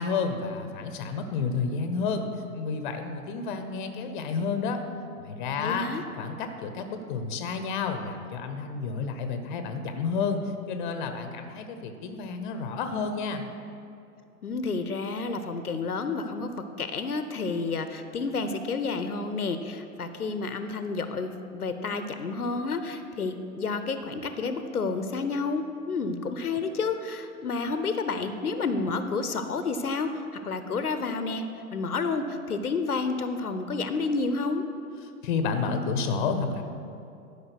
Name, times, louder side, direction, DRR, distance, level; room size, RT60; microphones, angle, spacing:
voice 1, 0.0-4.8 5.2-5.9 6.2-10.4 10.7-13.4 35.2-36.6, left 5 dB, 35° left, 7 dB, 0.8 m, -30 dB
voice 2, 5.6-6.0 14.4-31.5 31.7-34.6, left 4 dB, 75° left, 9 dB, 0.7 m, -30 dB
11.5 x 5.4 x 6.0 m, 2.6 s
figure-of-eight pair, 110°, 45 cm